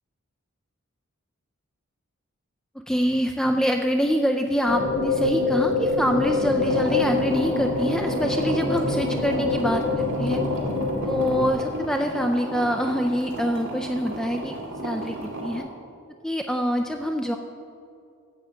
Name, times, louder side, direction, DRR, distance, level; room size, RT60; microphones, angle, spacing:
voice 1, 2.8-10.4 11.0-14.5 14.8-15.6 16.2-17.4, equal, 5° left, 4 dB, 0.3 m, -25 dB
sound 1, 4.7-11.5, left 3 dB, 70° left, 1.5 m, -25 dB
sound 2, 6.6-15.6, right 1 dB, 70° right, 1.9 m, -33 dB
8.7 x 6.9 x 7.4 m, 2.5 s
head